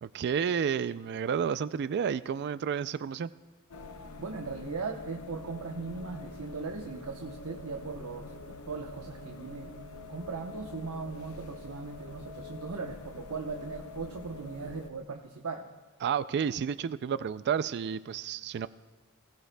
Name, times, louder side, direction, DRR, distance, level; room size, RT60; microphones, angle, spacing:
voice 1, 0.0-3.3 16.0-18.7, right 7 dB, 50° right, 15 dB, 0.3 m, -31 dB
sound 1, 3.7-14.9, left 3 dB, 75° left, 0.7 m, -45 dB
voice 2, 4.2-9.7 10.1-15.7, right 4 dB, 75° right, 2 dB, 0.9 m, -38 dB
20.5 x 17.5 x 2.2 m, 1.3 s
head